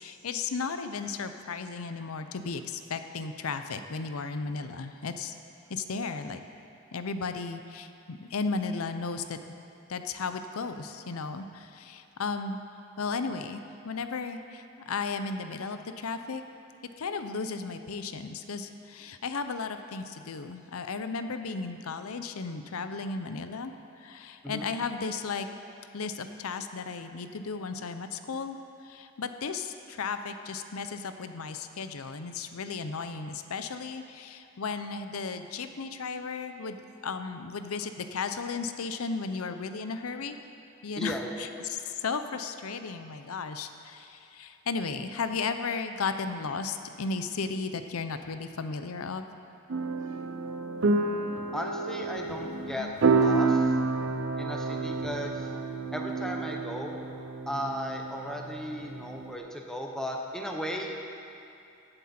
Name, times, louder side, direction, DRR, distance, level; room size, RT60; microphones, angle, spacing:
voice 1, 0.0-5.4 5.7-6.4 6.9-9.4 9.9-12.6 13.0-16.4 17.0-25.5 25.9-28.6 28.8-40.4 40.8-49.3, left 4 dB, 80° left, 9 dB, 0.6 m, -35 dB
voice 2, 41.0-41.4 51.5-53.7 54.4-55.4 55.9-57.0 57.5-61.0, equal, 5° left, 1 dB, 0.9 m, -36 dB
sound 1, 49.7-59.4, right 3 dB, 60° right, 0.6 m, -29 dB
16.0 x 7.8 x 4.4 m, 2.8 s
head